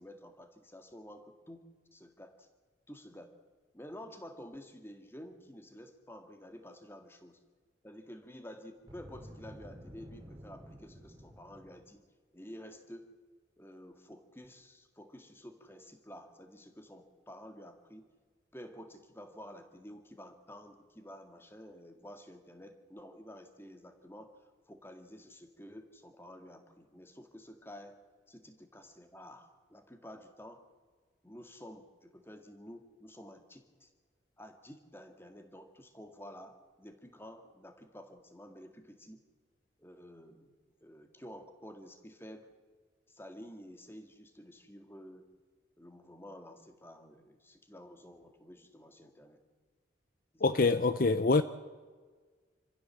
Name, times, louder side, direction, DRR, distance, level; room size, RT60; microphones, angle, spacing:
voice 1, 0.0-2.5 2.9-3.4 3.7-7.4 7.8-12.0 12.3-13.1 13.6-18.1 18.5-24.4 24.7-28.0 28.3-30.7 31.2-33.9 34.4-39.2 39.8-40.5 40.8-42.5 43.1-45.3 45.8-49.4 50.3-51.1, equal, 10° left, 6 dB, 1.9 m, -51 dB
Boom, 8.8-11.9, equal, 20° right, 2.8 m, -51 dB
voice 2, 50.4-51.4, left 3 dB, 50° left, 12 dB, 0.6 m, -25 dB
27.0 x 15.5 x 7.4 m, 1.5 s
head